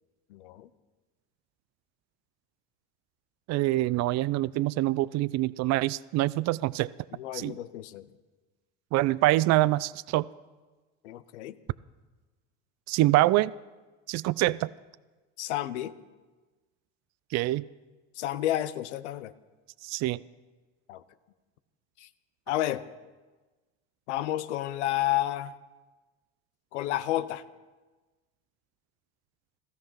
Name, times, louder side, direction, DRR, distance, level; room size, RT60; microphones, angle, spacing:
voice 1, 0.3-0.7 7.1-8.1 11.0-11.6 15.4-15.9 18.2-19.3 20.9-21.0 22.0-22.1 22.5-22.8 24.1-25.5 26.7-27.4, left 13 dB, 90° left, 13 dB, 0.8 m, -31 dB
voice 2, 3.5-6.9 7.3-7.5 8.9-10.3 12.9-13.5 14.1-14.7 17.3-17.6 19.8-20.2, right 17 dB, 50° right, 20 dB, 0.5 m, -25 dB
16.5 x 14.0 x 5.8 m, 1.2 s
supercardioid pair, 85°, 34 cm